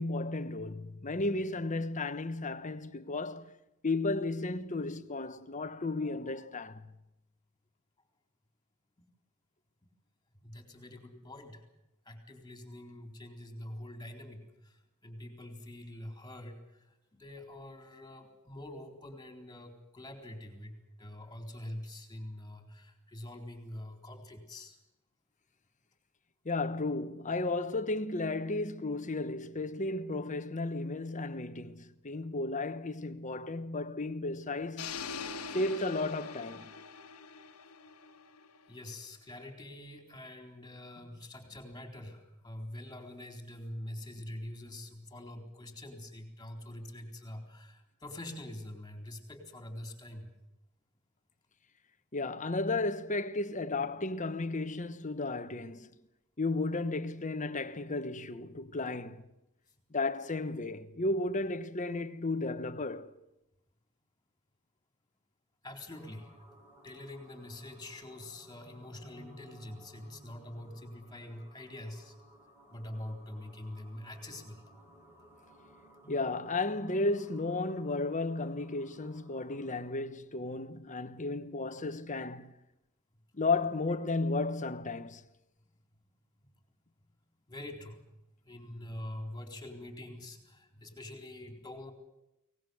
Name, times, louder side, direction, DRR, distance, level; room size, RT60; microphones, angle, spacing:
voice 1, 0.0-3.5 3.8-6.8 26.4-35.0 35.5-36.7 52.1-55.9 56.4-59.2 59.9-63.1 76.1-82.5 83.4-85.2, left 2 dB, 35° left, 1.2 m, -34 dB
voice 2, 10.3-11.6 12.0-24.8 38.7-50.3 65.6-66.3 66.8-72.1 72.7-74.6 86.3-86.5 87.5-88.0 88.4-91.9, left 1 dB, 20° left, 4.1 m, -45 dB
sound 1, 34.8-38.8, left 5 dB, 90° left, 1.6 m, -43 dB
sound 2, 65.9-79.9, equal, 10° right, 5.2 m, -58 dB
23.5 x 19.5 x 7.9 m
head